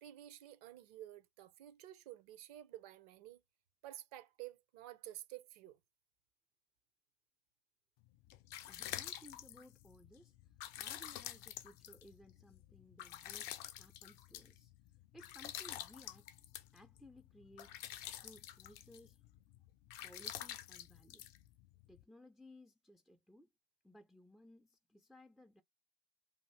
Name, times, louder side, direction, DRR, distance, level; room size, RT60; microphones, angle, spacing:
voice 1, 0.0-3.4 3.8-5.8, right 13 dB, 70° right, 0.6 m, -52 dB
sound 1, 8.1-22.0, left 12 dB, 55° left, 0.5 m, -49 dB
voice 2, 8.6-14.7 15.1-16.3 16.7-17.8 18.2-19.2 20.0-21.4 21.9-23.5 23.8-25.6, left 1 dB, ahead, 0.3 m, -60 dB
2.6 x 2.5 x 3.0 m
hypercardioid pair, 85°, 21 cm